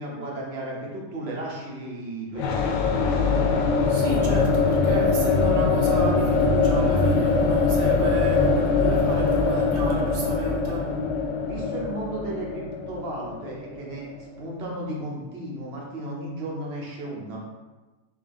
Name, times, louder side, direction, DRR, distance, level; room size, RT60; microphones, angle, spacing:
voice 1, 0.0-2.8 11.4-17.4, right 1 dB, 45° right, -2 dB, 0.9 m, -34 dB
sound 1, 2.4-14.2, left 4 dB, 85° left, 1.3 m, -22 dB
voice 2, 3.9-10.9, right 4 dB, 85° right, -2 dB, 0.4 m, -33 dB
4.1 x 3.4 x 3.4 m, 1.2 s
omnidirectional pair, 1.9 m